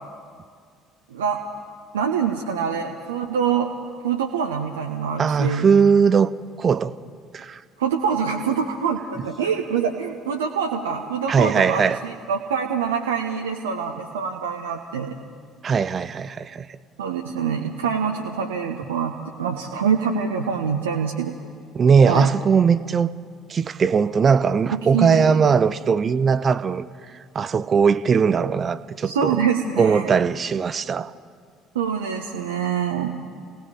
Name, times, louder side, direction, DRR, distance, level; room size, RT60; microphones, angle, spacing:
voice 1, 1.1-1.4 1.9-3.7 4.0-5.7 7.8-15.2 17.0-21.4 22.1-22.3 24.7-25.4 29.0-30.1 31.7-33.1, right 7 dB, 75° right, 1.1 m, -25 dB
voice 2, 5.2-6.3 6.6-6.9 7.3-7.6 11.3-12.0 15.6-16.7 21.7-23.1 23.5-26.9 27.3-29.4 29.8-31.1, right 6 dB, 35° right, 0.7 m, -19 dB
30.0 x 18.0 x 5.2 m
figure-of-eight pair, 55°, 0 cm